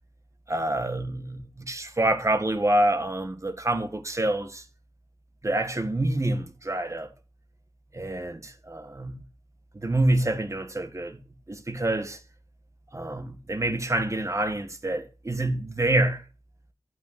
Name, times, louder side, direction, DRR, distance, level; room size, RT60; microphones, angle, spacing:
voice 1, 0.5-4.6 5.4-7.1 7.9-9.2 9.7-11.2 11.5-12.2 12.9-16.2, right 1 dB, 35° right, 1.7 m, -27 dB
12.0 x 6.4 x 6.0 m
wide cardioid pair, 80°, 9 cm